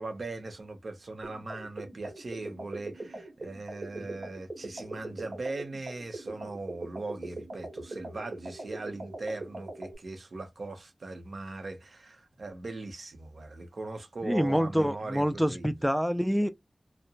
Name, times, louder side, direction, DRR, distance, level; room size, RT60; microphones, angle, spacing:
voice 1, 0.0-15.7, right 2 dB, 85° right, 0.7 m, -39 dB
sound 1, 1.2-9.9, right 2 dB, 60° right, 1.0 m, -41 dB
voice 2, 14.2-16.5, equal, ahead, 0.3 m, -26 dB
2.7 x 2.0 x 2.7 m
wide cardioid pair, 75°, 0 cm